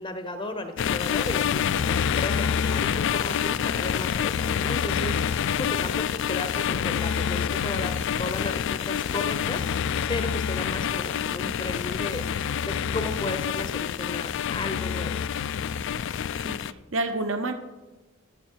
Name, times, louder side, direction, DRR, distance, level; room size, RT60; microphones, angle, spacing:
voice 1, 0.0-9.8 10.1-12.3 12.6-15.2, left 2 dB, 25° left, 7 dB, 0.7 m, -35 dB
sound 1, 0.8-16.7, left 8 dB, 60° left, 0.3 m, -27 dB
voice 2, 16.4-17.5, right 2 dB, 65° right, 7 dB, 0.9 m, -29 dB
14.5 x 6.7 x 4.6 m, 1.1 s
head